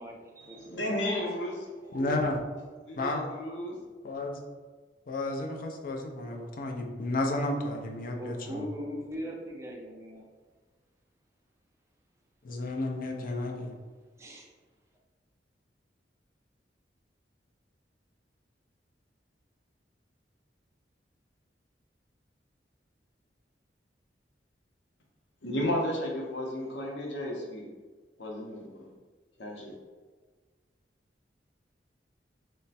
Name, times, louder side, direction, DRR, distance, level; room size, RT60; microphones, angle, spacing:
voice 1, 0.0-1.0 8.2-10.3 14.2-14.5, equal, 15° right, -1 dB, 0.5 m, -40 dB
voice 2, 0.7-2.1 2.8-3.8 25.4-27.7 28.2-28.9 29.4-29.7, left 1 dB, 90° left, -1 dB, 0.7 m, -33 dB
voice 3, 1.9-2.4 3.0-3.3 4.0-4.4 5.1-8.6 12.4-13.7, left 2 dB, 50° left, 2 dB, 0.5 m, -32 dB
3.1 x 2.1 x 4.1 m, 1.4 s
head